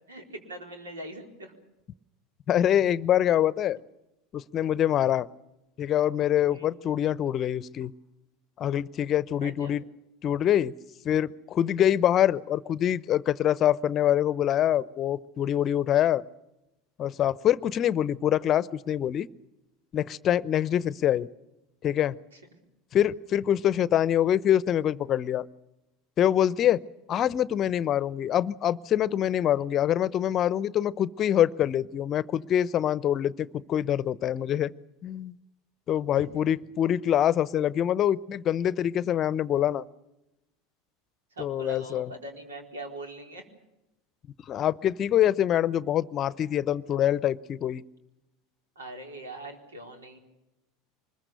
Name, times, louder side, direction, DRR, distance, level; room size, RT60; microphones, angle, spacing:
voice 1, 0.1-1.5 6.5-6.7 9.4-9.7 22.3-22.4 36.1-36.3 41.3-43.5 48.8-50.2, right 1 dB, 85° right, 4 dB, 4.1 m, -42 dB
voice 2, 2.5-3.8 4.3-5.3 5.8-7.9 8.6-9.8 10.2-10.7 11.0-16.2 17.0-19.3 19.9-21.3 21.8-22.2 22.9-25.5 26.2-26.8 27.1-34.7 35.0-35.4 35.9-39.8 41.4-42.1 44.5-47.8, left 11 dB, 40° left, 20 dB, 0.7 m, -25 dB
24.5 x 21.5 x 6.8 m, 0.93 s
hypercardioid pair, 80°, 0 cm